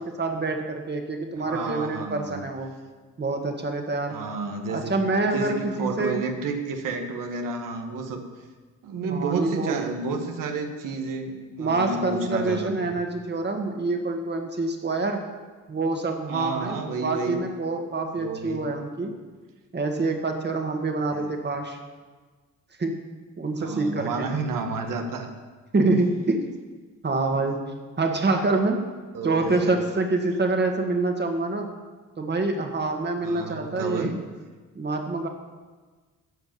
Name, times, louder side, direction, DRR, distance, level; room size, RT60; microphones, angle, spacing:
voice 1, 0.0-2.7 3.2-4.2 4.7-6.2 9.1-9.8 11.6-15.2 15.7-19.1 19.7-21.8 22.8-23.1 23.4-24.3 25.7-26.4 27.0-27.6 28.0-28.8 29.2-31.7 32.2-34.1 34.8-35.3, right 3 dB, 35° right, 4 dB, 2.0 m, -26 dB
voice 2, 1.4-2.4 4.1-5.0 5.3-8.2 8.8-12.9 16.3-17.4 18.1-18.7 21.1-21.3 23.6-25.3 29.1-29.8 33.2-34.2, right 4 dB, 80° right, 4 dB, 1.7 m, -31 dB
14.0 x 5.2 x 8.7 m, 1.4 s
cardioid pair, 80°, 32 cm